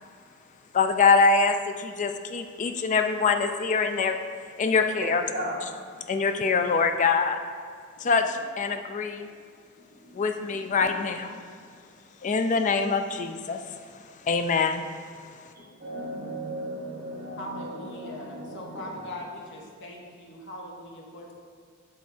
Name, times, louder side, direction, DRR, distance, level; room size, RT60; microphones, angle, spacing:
voice 1, 0.7-4.1 4.6-5.2 6.1-7.4 8.0-9.3 10.1-11.4 12.2-13.6 14.3-14.8, left 4 dB, 35° left, 7 dB, 0.4 m, -24 dB
voice 2, 9.8-10.7 15.6-18.9, right 1 dB, 40° right, -6 dB, 1.6 m, -37 dB
voice 3, 17.4-21.3, left 1 dB, 55° left, 0 dB, 1.0 m, -40 dB
7.5 x 3.6 x 4.3 m, 2.2 s
head